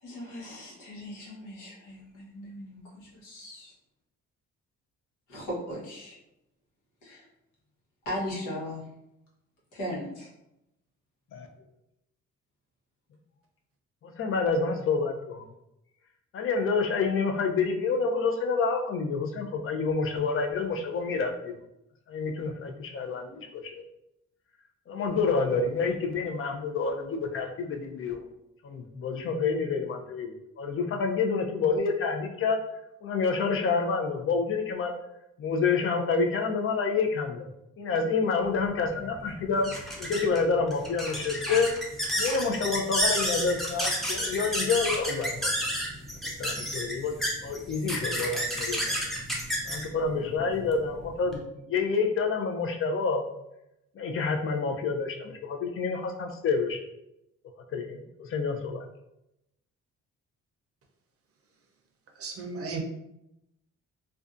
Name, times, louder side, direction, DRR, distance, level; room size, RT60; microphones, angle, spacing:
voice 1, 0.0-3.7 5.3-6.2 7.0-7.2 8.0-8.9 9.7-10.3, equal, 85° left, -5 dB, 1.0 m, -38 dB
voice 2, 14.0-15.4 16.3-21.6 22.1-23.8 24.9-28.2 28.6-32.7 33.0-34.9 35.4-37.5 37.8-39.7 40.0-41.7 42.2-45.5 46.2-49.0 49.6-53.2 54.0-56.9 57.7-58.8, left 4 dB, 45° left, 4 dB, 0.5 m, -28 dB
sound 1, 38.5-51.4, equal, ahead, 0.6 m, -31 dB
voice 3, 62.2-62.8, right 4 dB, 50° right, 2 dB, 0.6 m, -34 dB
2.5 x 2.2 x 2.4 m, 0.84 s
cardioid pair, 90°, 30 cm